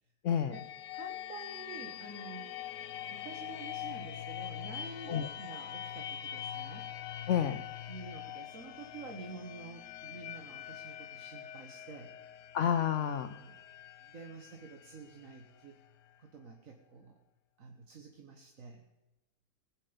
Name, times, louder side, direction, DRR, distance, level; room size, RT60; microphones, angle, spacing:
voice 1, 0.2-0.6 5.1-5.3 7.3-7.6 12.5-13.4, left 8 dB, 60° left, 8 dB, 0.9 m, -29 dB
sound 1, 0.5-16.2, left 10 dB, 85° left, 1.3 m, -44 dB
voice 2, 0.9-2.5 3.1-6.9 7.9-12.4 12.9-13.5 14.0-15.8 16.2-17.2 17.6-18.8, right 3 dB, 55° right, 2 dB, 1.7 m, -49 dB
20.5 x 8.9 x 5.2 m, 1.0 s
omnidirectional pair, 1.7 m